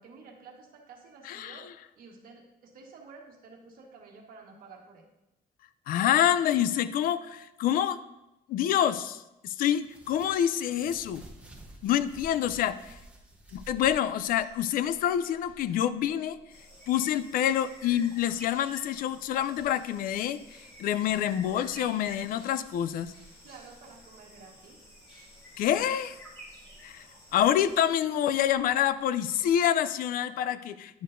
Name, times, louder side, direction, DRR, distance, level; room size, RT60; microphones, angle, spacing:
voice 1, 0.0-1.7 2.0-5.0 23.4-24.9, right 4 dB, 65° right, 1 dB, 1.5 m, -51 dB
voice 2, 1.2-1.7 5.9-8.0 8.5-11.2 11.8-12.9 13.5-16.4 16.9-20.4 20.8-23.1 25.6-26.2 26.8-27.0 27.3-31.0, left 10 dB, 65° left, 14 dB, 0.4 m, -27 dB
sound 1, 9.8-14.6, right 2 dB, 5° right, 0.8 m, -50 dB
sound 2, 13.3-29.3 29.6-29.7, equal, 15° left, 2.5 m, -52 dB
sound 3, 16.5-27.8, left 1 dB, 35° left, 2.9 m, -55 dB
10.0 x 6.5 x 2.6 m, 0.94 s
cardioid pair, 155°, 16 cm